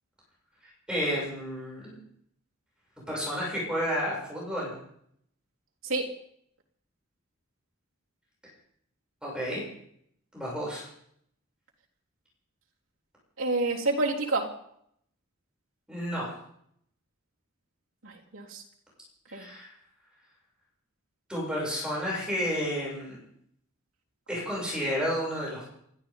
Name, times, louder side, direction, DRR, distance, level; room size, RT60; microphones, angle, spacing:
voice 1, 0.6-2.0 3.1-4.8 9.2-9.6 10.3-10.8 15.9-16.4 19.3-19.7 21.3-23.2 24.3-25.6, equal, 5° right, -5 dB, 7.2 m, -31 dB
voice 2, 13.4-14.5 18.0-18.6 19.3-19.5, right 2 dB, 80° right, -4 dB, 3.7 m, -28 dB
29.0 x 13.0 x 3.9 m, 0.70 s
head